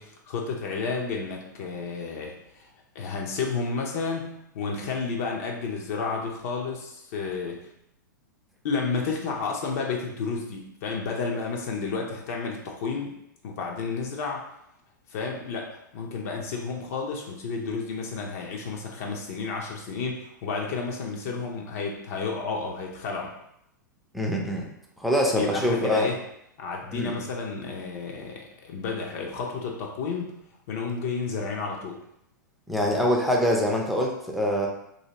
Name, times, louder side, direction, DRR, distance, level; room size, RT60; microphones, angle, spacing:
voice 1, 0.0-2.7 2.9-7.7 8.6-13.2 13.4-14.4 15.1-15.7 15.9-23.3 25.3-26.2 26.6-30.3 30.7-32.0, left 4 dB, 50° left, 0 dB, 0.5 m, -31 dB
voice 2, 24.1-24.6 25.0-26.1 26.9-27.2 32.7-34.7, equal, ahead, -1 dB, 0.5 m, -24 dB
2.7 x 2.7 x 2.8 m, 0.77 s
figure-of-eight pair, 100°, 10 cm